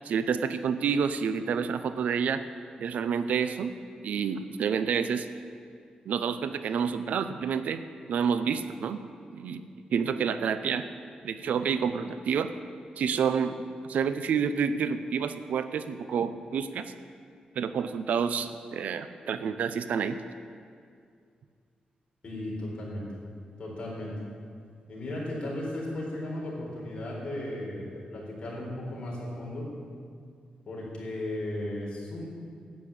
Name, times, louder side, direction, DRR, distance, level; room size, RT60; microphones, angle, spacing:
voice 1, 0.0-2.4 2.8-3.7 4.0-5.3 6.1-7.8 8.1-9.0 9.3-9.6 9.9-10.8 11.2-12.5 13.0-13.5 13.8-16.9 17.6-20.2, right 6 dB, 80° right, 11 dB, 0.6 m, -28 dB
voice 2, 22.2-23.1 23.6-24.1 24.9-29.7 30.7-32.3, left 1 dB, 45° left, -4 dB, 4.1 m, -35 dB
11.0 x 8.4 x 8.6 m, 2.2 s
wide cardioid pair, 150°, 3 cm